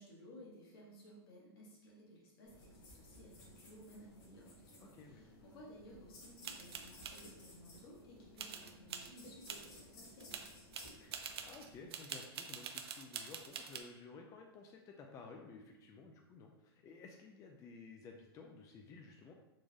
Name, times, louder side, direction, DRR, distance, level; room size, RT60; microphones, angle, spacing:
voice 1, 0.0-10.5, equal, 70° left, -4 dB, 1.4 m, -57 dB
sound 1, 2.4-11.8, left 1 dB, 45° left, 1.5 m, -58 dB
voice 2, 4.8-5.3 11.0-19.3, left 4 dB, 25° left, 2 dB, 0.3 m, -54 dB
sound 2, 6.4-7.2 8.4-9.1 9.5-9.7 10.0-13.8, right 7 dB, 80° right, 0.4 m, -46 dB
3.6 x 2.5 x 3.3 m, 0.99 s
hypercardioid pair, 115°, 13 cm